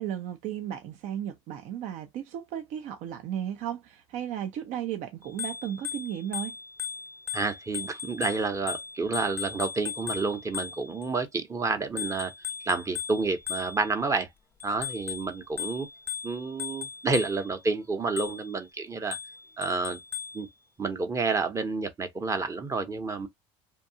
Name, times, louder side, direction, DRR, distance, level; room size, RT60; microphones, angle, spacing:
voice 1, 0.0-6.5, right 10 dB, 60° right, 0.5 m, -35 dB
Bicycle bell, 5.2-11.1 12.0-14.1 14.6-17.6 18.2-18.6 19.1-20.5, left 8 dB, 15° left, 0.5 m, -37 dB
voice 2, 7.3-12.3 12.6-14.3 14.6-15.9 16.2-19.2 19.6-20.0 20.3-20.5 20.8-23.3, right 4 dB, 20° right, 0.7 m, -29 dB
2.7 x 2.2 x 2.7 m
supercardioid pair, 100°, 15 cm